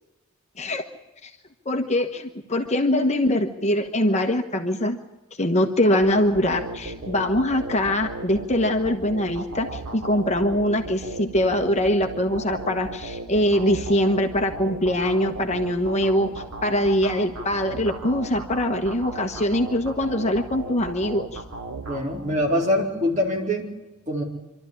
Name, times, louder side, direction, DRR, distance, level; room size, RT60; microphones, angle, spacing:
voice 1, 1.6-5.0 5.4-21.4, left 1 dB, 30° left, 5 dB, 1.2 m, -23 dB
sound 1, 6.0-22.6, right 2 dB, 80° right, 3.0 m, -36 dB
voice 2, 21.9-23.7 24.1-24.2, equal, 35° right, 0 dB, 4.5 m, -24 dB
26.5 x 12.5 x 9.9 m, 1.1 s
head